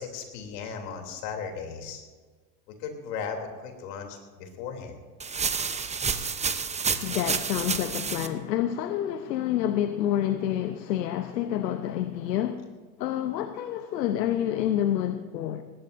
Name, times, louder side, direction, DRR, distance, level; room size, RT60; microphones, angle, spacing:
voice 1, 0.0-2.0 2.8-4.9, left 6 dB, 65° left, 3.3 m, -36 dB
sound 1, 5.2-8.3, right 5 dB, 15° right, 0.8 m, -29 dB
voice 2, 7.0-12.6 13.0-15.6, left 11 dB, 80° left, 1.0 m, -28 dB
19.5 x 18.5 x 2.7 m
hypercardioid pair, 100°, 49 cm